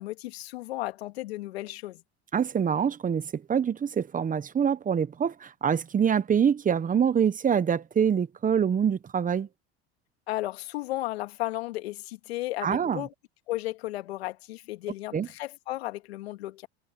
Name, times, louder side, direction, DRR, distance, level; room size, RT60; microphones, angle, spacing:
voice 1, 0.0-2.0 10.3-13.1 13.5-16.7, left 17 dB, 85° left, 2.1 m, -34 dB
voice 2, 2.3-9.5 12.6-13.0 15.1-15.3, right 7 dB, 25° right, 1.1 m, -25 dB
hypercardioid pair, 90°, 31 cm